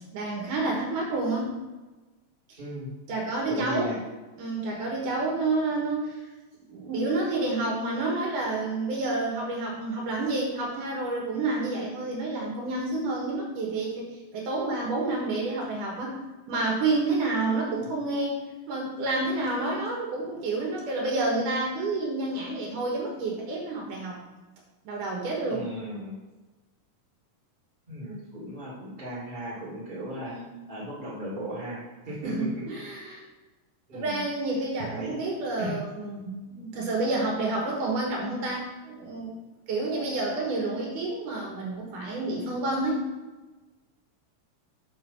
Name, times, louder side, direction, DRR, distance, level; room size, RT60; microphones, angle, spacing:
voice 1, 0.1-1.5 2.5-2.6 3.1-4.0 4.4-6.2 6.7-14.1 14.3-16.2 16.5-18.4 18.7-24.2 24.8-25.6 30.2-30.5 32.2-33.2 33.9-39.3 39.7-43.0, right 2 dB, 75° right, -2 dB, 3.0 m, -29 dB
voice 2, 2.6-2.9 3.5-4.0 25.5-26.2 27.9-30.4 30.7-32.5 32.9-33.1 33.9-34.2 34.9-35.2 35.6-35.8, equal, 15° right, -8 dB, 2.5 m, -36 dB
7.1 x 5.5 x 5.7 m, 1.2 s
omnidirectional pair, 3.8 m